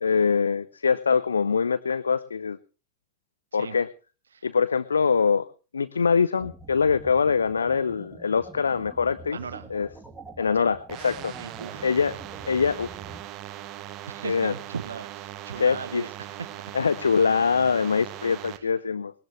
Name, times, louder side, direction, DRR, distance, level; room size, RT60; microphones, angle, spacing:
voice 1, 0.0-2.6 3.5-3.9 4.4-5.5 5.7-9.4 9.7-9.9 10.4-11.4 11.8-12.1 12.5-12.9 14.2-14.5 15.6-16.0 16.7-19.1, left 5 dB, 75° left, 0.6 m, -23 dB
sound 1, 6.4-13.2, right 2 dB, 5° right, 2.8 m, -45 dB
voice 2, 9.3-9.7 10.5-10.7 11.4-11.9 14.1-16.6 18.5-18.7, right 6 dB, 70° right, 0.9 m, -38 dB
sound 2, 10.9-18.6, right 13 dB, 35° right, 1.1 m, -40 dB
20.0 x 13.5 x 3.2 m
figure-of-eight pair, 90°, 0 cm